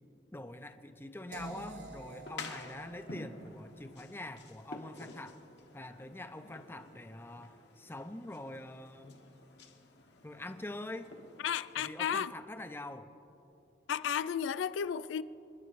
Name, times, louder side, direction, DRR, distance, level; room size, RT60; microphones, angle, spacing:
voice 1, 0.3-5.4 5.7-9.2 10.2-11.1 11.8-13.1, left 1 dB, 10° left, 0.5 m, -45 dB
sound 1, 1.3-7.2, right 2 dB, 90° right, 3.0 m, -51 dB
sound 2, 1.8-11.8, left 3 dB, 65° left, 1.2 m, -51 dB
voice 2, 11.4-12.3 13.9-15.2, left 8 dB, 90° left, 0.3 m, -33 dB
26.5 x 10.5 x 3.2 m
head